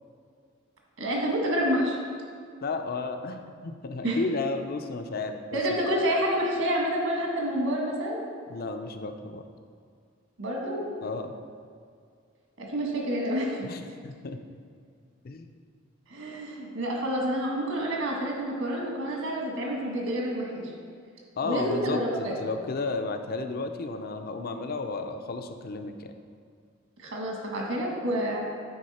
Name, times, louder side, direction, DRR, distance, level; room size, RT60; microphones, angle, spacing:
voice 1, 1.0-2.0 4.0-4.2 5.5-8.2 10.4-11.0 12.6-13.7 16.1-20.7 21.4-22.4 27.0-28.4, equal, 80° right, -1 dB, 1.7 m, -28 dB
voice 2, 2.6-5.6 8.5-9.4 11.0-11.3 13.6-14.4 15.2-15.5 21.4-26.1, left 3 dB, 50° left, 7 dB, 0.5 m, -33 dB
9.5 x 4.7 x 4.3 m, 2.1 s
head